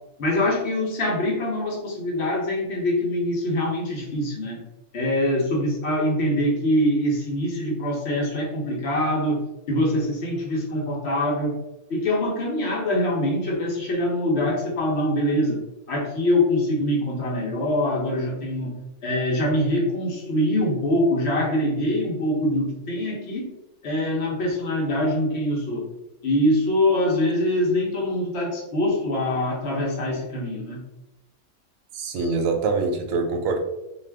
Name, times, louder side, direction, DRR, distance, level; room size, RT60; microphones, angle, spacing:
voice 1, 0.2-4.6 4.9-9.4 9.7-11.5 11.9-15.6 15.9-18.7 19.0-23.5 23.8-25.9 26.2-30.8 32.2-32.3, left 1 dB, 55° left, -2 dB, 0.9 m, -24 dB
voice 2, 31.9-33.6, right 4 dB, 70° right, 4 dB, 0.9 m, -24 dB
2.5 x 2.4 x 3.3 m, 0.91 s
omnidirectional pair, 1.6 m